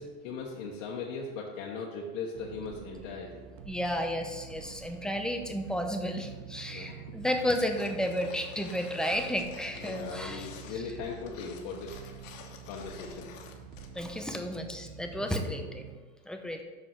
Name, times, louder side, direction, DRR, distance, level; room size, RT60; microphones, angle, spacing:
voice 1, 0.0-3.4 6.7-7.0 9.8-12.0 12.7-13.3 15.3-15.4, left 4 dB, 60° left, -2 dB, 1.2 m, -39 dB
sound 1, 2.3-16.0, right 8 dB, 70° right, 0.8 m, -47 dB
voice 2, 3.7-10.9 13.9-15.8 16.3-16.6, equal, ahead, 4 dB, 0.6 m, -32 dB
sound 2, 7.5-14.1 14.4-14.5, left 6 dB, 85° left, 1.2 m, -50 dB
6.4 x 4.9 x 5.7 m, 1.3 s
supercardioid pair, 120°, 38 cm